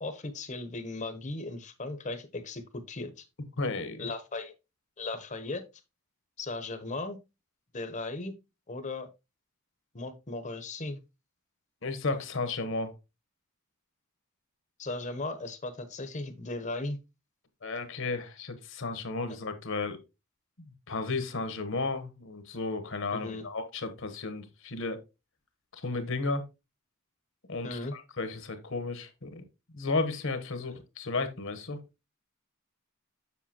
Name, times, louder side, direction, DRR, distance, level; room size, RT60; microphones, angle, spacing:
voice 1, 0.0-3.2 4.0-4.5 5.0-5.6 6.4-7.2 7.7-8.3 8.7-9.1 9.9-11.0 14.8-17.0 23.2-23.5 27.6-27.9 30.7-30.8, left 2 dB, 35° left, 0.9 m, -37 dB
voice 2, 3.6-4.1 11.8-12.9 17.6-20.0 20.9-25.0 25.7-26.4 27.5-29.4 29.7-31.8, left 3 dB, 60° left, 1.1 m, -33 dB
7.4 x 6.6 x 2.8 m
head